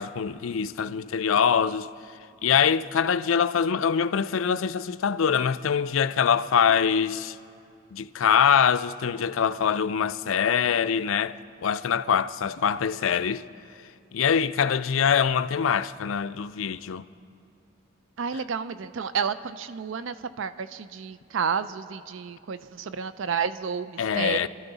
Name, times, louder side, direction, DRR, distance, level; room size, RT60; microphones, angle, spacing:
voice 1, 0.0-1.9 2.4-7.4 7.9-13.4 14.1-17.0 24.0-24.5, left 7 dB, 90° left, 0.4 m, -24 dB
voice 2, 18.2-24.5, right 6 dB, 75° right, 0.5 m, -31 dB
27.0 x 13.5 x 4.0 m
head